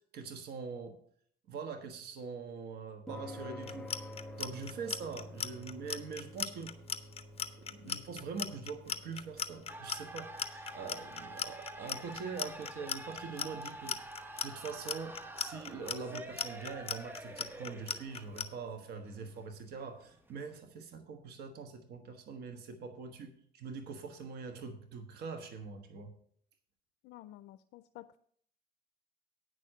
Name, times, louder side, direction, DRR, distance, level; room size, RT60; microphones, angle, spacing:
voice 1, 0.1-1.0 1.5-6.7 7.6-14.0 14.4-26.1, right 5 dB, 75° right, 6 dB, 1.3 m, -43 dB
sound 1, 3.1-19.6, left 1 dB, 5° left, 1.3 m, -52 dB
Clock, 3.6-18.5, left 7 dB, 35° left, 0.8 m, -37 dB
sound 2, 9.7-20.6, right 2 dB, 10° right, 0.9 m, -48 dB
voice 2, 27.0-28.2, left 15 dB, 85° left, 13 dB, 0.4 m, -52 dB
9.4 x 6.4 x 6.5 m, 0.62 s
cardioid pair, 110°, 17 cm